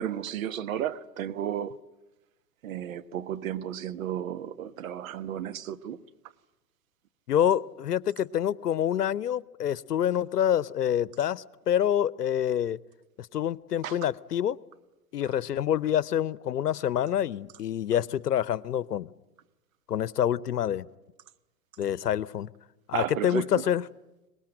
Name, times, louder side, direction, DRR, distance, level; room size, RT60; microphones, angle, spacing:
voice 1, 0.0-1.7 2.6-6.0 13.8-13.9 22.9-23.4, right 10 dB, 55° right, 1.3 m, -33 dB
voice 2, 7.3-12.8 13.2-14.6 15.1-19.1 19.9-20.9 21.8-22.5 22.9-23.9, left 10 dB, 75° left, 0.9 m, -27 dB
23.5 x 20.0 x 8.9 m
figure-of-eight pair, 115°, 48 cm